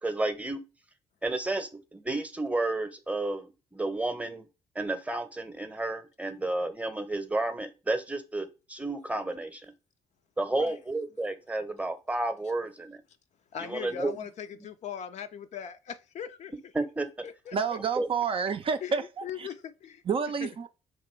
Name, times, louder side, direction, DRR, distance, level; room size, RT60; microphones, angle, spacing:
voice 1, 0.0-0.6 1.2-4.5 4.7-9.6 10.4-13.0 13.6-14.2 16.7-17.3 18.0-18.1, right 2 dB, 10° right, 0.8 m, -31 dB
voice 2, 10.5-10.8 13.5-16.5 17.2-17.8 18.8-20.0 20.4-20.7, left 8 dB, 50° left, 0.4 m, -40 dB
voice 3, 17.5-19.5 20.1-20.7, right 6 dB, 35° right, 0.4 m, -29 dB
3.0 x 2.9 x 4.4 m
hypercardioid pair, 45°, 15 cm